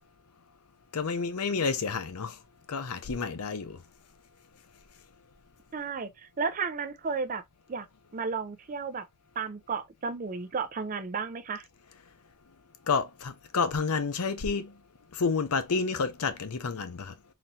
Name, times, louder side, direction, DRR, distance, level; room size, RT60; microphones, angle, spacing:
voice 1, 0.9-2.4 2.7-3.8 12.9-14.8 15.1-17.1, left 5 dB, 80° left, 0.6 m, -30 dB
voice 2, 5.7-7.4 7.7-7.9 8.1-9.1 9.4-11.7, right 5 dB, 35° right, 0.4 m, -33 dB
4.0 x 3.0 x 2.7 m
head